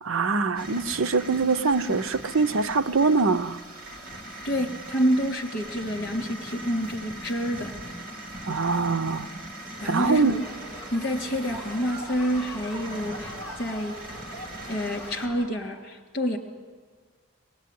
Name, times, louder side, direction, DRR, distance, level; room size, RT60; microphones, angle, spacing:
voice 1, 0.0-3.6 8.4-9.3 9.8-10.4, right 4 dB, 75° right, 0.7 m, -23 dB
sound 1, 0.5-15.3, right 1 dB, 40° right, 3.0 m, -40 dB
voice 2, 4.4-7.7 9.8-10.4 10.9-14.0 14.7-16.4, equal, 45° left, 3.3 m, -28 dB
sound 2, 9.8-15.4, equal, 15° left, 5.5 m, -41 dB
22.5 x 20.0 x 9.5 m
head